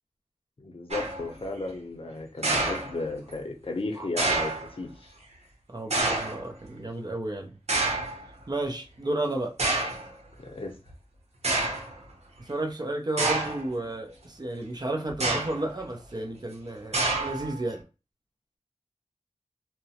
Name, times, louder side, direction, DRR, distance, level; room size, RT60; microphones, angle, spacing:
voice 1, 0.6-5.1 10.4-10.8, left 3 dB, 60° left, 3 dB, 0.6 m, -34 dB
sound 1, 0.9-1.3 2.4-3.3 4.2-4.7 5.9-6.5 7.7-8.2 9.0-9.1 9.6-10.1 10.9-11.0 11.4-11.9 13.2-13.7 15.1-15.7 16.9-17.6, right 2 dB, 85° right, 0.7 m, -27 dB
voice 2, 5.7-7.6 8.5-9.6 12.5-17.8, right 1 dB, 40° right, 2 dB, 0.6 m, -32 dB
2.9 x 2.0 x 2.8 m, 0.31 s
wide cardioid pair, 65°, 11 cm